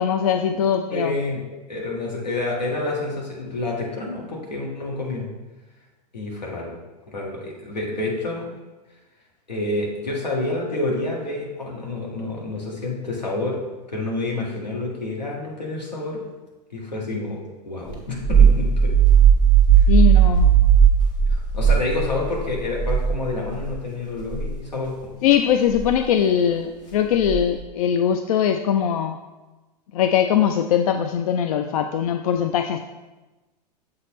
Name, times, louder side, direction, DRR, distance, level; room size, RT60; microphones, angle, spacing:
voice 1, 0.0-1.1 19.9-20.5 25.2-29.2 29.9-32.8, left 9 dB, 60° left, 6 dB, 0.4 m, -21 dB
voice 2, 0.9-5.3 6.1-6.7 7.1-8.4 9.5-13.6 13.9-16.2 16.7-18.9 21.3-25.1, left 2 dB, 85° left, -2 dB, 1.6 m, -28 dB
sound 1, 17.9-23.8 24.2-24.5 25.7-26.0 27.2-27.6, right 7 dB, 20° left, 1.5 m, -17 dB
7.3 x 4.3 x 3.1 m, 1.1 s
figure-of-eight pair, 100°, 21 cm